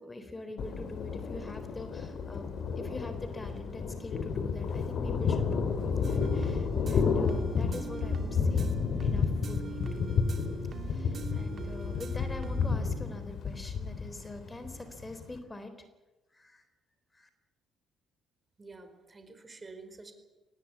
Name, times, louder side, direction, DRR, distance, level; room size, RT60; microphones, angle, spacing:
voice 1, 0.0-8.7 9.0-10.2 10.9-15.7 16.3-16.6 17.1-17.3, left 2 dB, 20° left, 9 dB, 4.0 m, -44 dB
Thunder, 0.6-15.4, left 5 dB, 55° left, 2.8 m, -31 dB
sound 1, 6.0-12.7, right 5 dB, 45° right, 2.9 m, -43 dB
voice 2, 18.6-20.1, right 3 dB, 30° right, 8 dB, 4.7 m, -49 dB
23.5 x 19.5 x 8.4 m, 1.2 s
hypercardioid pair, 50°, 0 cm